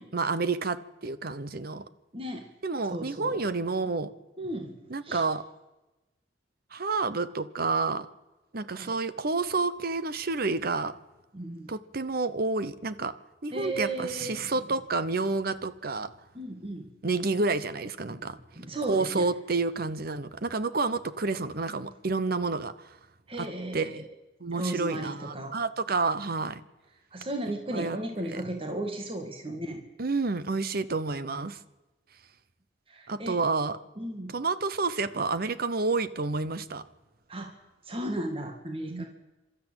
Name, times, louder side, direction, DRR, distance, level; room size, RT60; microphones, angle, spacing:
voice 1, 0.1-1.9 2.6-4.1 4.9-5.4 6.7-8.1 8.5-10.9 11.7-13.1 13.4-16.1 17.0-18.4 18.9-23.0 23.4-23.5 23.7-24.0 24.4-26.6 27.7-28.0 28.3-28.4 30.0-31.6 33.1-33.8 34.3-36.8 38.9-39.0, right 3 dB, 55° right, 14 dB, 1.0 m, -29 dB
voice 2, 2.1-2.4 2.9-3.4 4.4-5.2 8.7-9.0 11.3-11.7 13.5-14.5 16.3-16.9 18.1-19.3 23.3-23.9 24.6-25.6 27.1-29.8 32.9-33.4 34.0-34.4 37.3-37.5 37.9-39.1, right 1 dB, 30° right, 4 dB, 2.0 m, -35 dB
28.5 x 13.0 x 8.9 m, 1.1 s
head